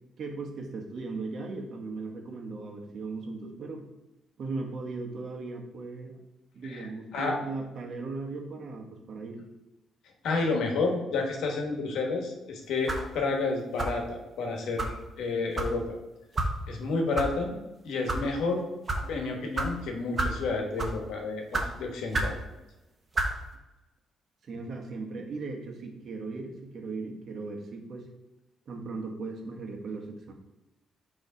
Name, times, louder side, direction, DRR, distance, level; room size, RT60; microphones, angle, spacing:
voice 1, 0.2-3.8 4.4-6.2 6.5-9.4 24.4-28.1 28.7-30.3, right 3 dB, 60° right, 2 dB, 1.1 m, -37 dB
voice 2, 6.6-7.4 10.2-16.0 16.7-17.6 17.8-18.6 19.0-22.4, left 3 dB, 80° left, 2 dB, 1.2 m, -30 dB
sound 1, 12.9-13.1 13.8-14.1 14.8-14.9 15.6-15.7 16.4-16.5 17.1-17.3 17.9-18.2 18.9-19.0 19.6-19.7 20.2-20.4 20.8-21.0 21.5-21.7 22.1-22.4 23.1-23.3, right 2 dB, 35° right, 1.0 m, -29 dB
6.7 x 3.2 x 4.8 m, 1.0 s
cardioid pair, 90°, 0 cm